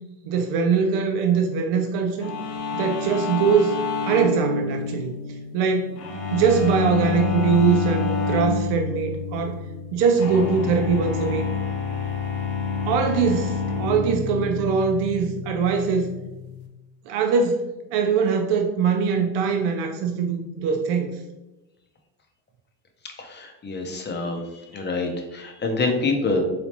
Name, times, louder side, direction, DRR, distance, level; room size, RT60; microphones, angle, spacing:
voice 1, 0.3-2.3 2.7-3.7 4.1-5.1 5.5-5.9 6.3-9.6 9.9-11.4 12.8-16.1 17.1-17.6 17.9-21.1, right 6 dB, 70° right, 4 dB, 0.7 m, -22 dB
sound 1, 2.2-16.7, left 5 dB, 65° left, 0.9 m, -28 dB
voice 2, 23.4-24.4 24.7-26.4, left 3 dB, 25° left, 4 dB, 0.7 m, -26 dB
3.9 x 3.3 x 2.9 m, 1.0 s
cardioid pair, 120°, 42 cm